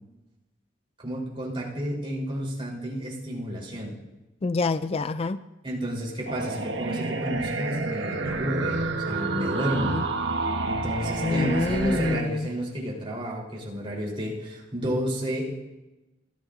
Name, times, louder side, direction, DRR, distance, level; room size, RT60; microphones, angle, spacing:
voice 1, 1.0-3.9 5.6-10.0 10.6-15.5, equal, 30° right, 3.9 m, -31 dB
voice 2, 4.4-5.4 9.7-10.1 11.2-12.5, left 3 dB, 30° left, 0.4 m, -27 dB
sound 1, 6.3-12.2, right 3 dB, 65° right, 1.1 m, -29 dB
26.0 x 13.5 x 2.6 m
head